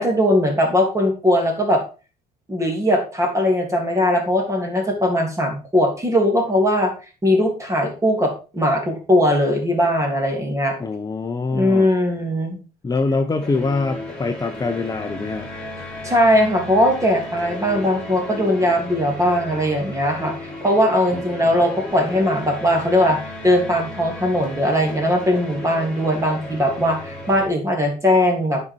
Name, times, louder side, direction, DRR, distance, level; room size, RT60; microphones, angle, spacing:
voice 1, 0.0-1.8 2.5-6.9 7.2-10.8 11.5-12.6 16.0-23.2 23.4-28.6, left 1 dB, 15° right, 3 dB, 3.1 m, -19 dB
voice 2, 10.8-11.9 12.8-15.5 21.1-21.4, left 3 dB, 20° left, 5 dB, 0.9 m, -24 dB
sound 1, 13.4-27.5, left 1 dB, 5° left, 3.4 m, -34 dB
9.6 x 5.6 x 4.6 m, 0.34 s
cardioid pair, 110°, 17 cm